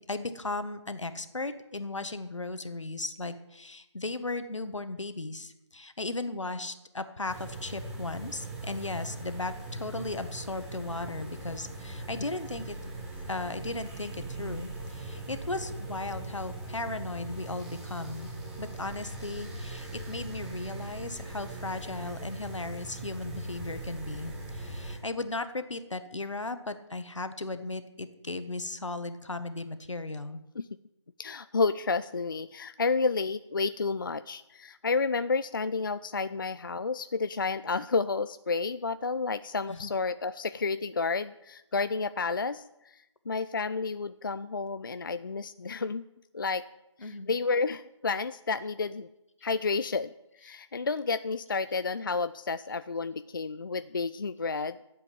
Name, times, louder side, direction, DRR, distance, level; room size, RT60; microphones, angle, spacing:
voice 1, 0.1-12.8 13.3-18.3 18.6-30.4 39.7-39.9 47.0-47.3, left 2 dB, 75° left, 10 dB, 1.4 m, -36 dB
sound 1, 7.3-25.0, right 2 dB, 5° right, 1.0 m, -40 dB
voice 2, 31.2-46.1 46.3-46.7 47.0-49.1 49.4-54.8, left 4 dB, 45° left, 13 dB, 0.4 m, -31 dB
12.5 x 7.8 x 7.5 m, 0.89 s
figure-of-eight pair, 160°, 16 cm